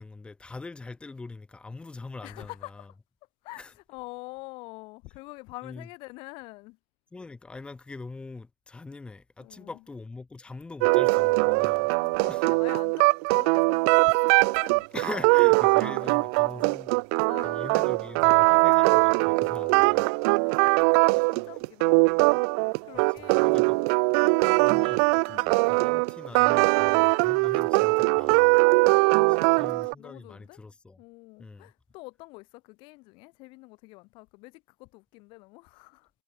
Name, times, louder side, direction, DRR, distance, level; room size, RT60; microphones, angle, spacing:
voice 1, 0.0-2.9 3.6-3.7 5.6-5.9 7.1-11.9 12.3-12.5 14.9-16.9 17.4-20.1 21.1-21.2 23.2-23.8 24.4-28.6 29.1-31.0 31.4-31.7, left 3 dB, 5° left, 3.6 m, -43 dB
voice 2, 2.2-2.9 3.4-6.8 9.4-9.7 12.0-14.9 16.0-16.7 17.2-17.9 19.5-20.1 20.4-23.8 24.2-24.4 25.3-25.6 28.7-30.6 31.0-36.1, left 24 dB, 25° left, 3.6 m, -46 dB
sound 1, 10.8-29.9, right 36 dB, 25° right, 0.7 m, -22 dB
figure-of-eight pair, 125°, 20 cm